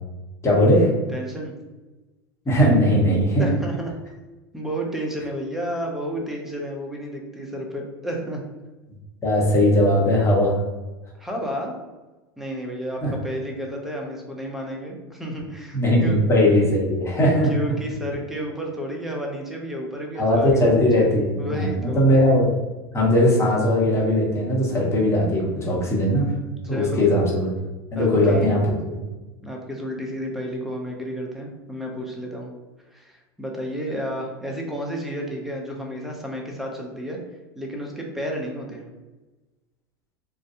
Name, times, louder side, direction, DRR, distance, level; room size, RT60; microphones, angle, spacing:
voice 1, 0.4-0.9 2.5-3.5 9.2-10.5 13.0-13.1 15.7-17.5 20.2-22.5 22.9-26.3 26.7-27.5 27.9-29.0, left 1 dB, 20° left, -4 dB, 1.0 m, -19 dB
voice 2, 1.1-1.5 3.4-3.9 4.5-8.4 11.2-11.8 12.4-16.2 17.4-20.7 21.0-21.1 21.4-22.0 26.6-27.0 27.9-28.5 29.4-32.5 32.9-37.2 37.6-38.9, equal, ahead, 0 dB, 0.6 m, -31 dB
2.5 x 2.2 x 2.6 m, 1.2 s
hypercardioid pair, 90°, 13 cm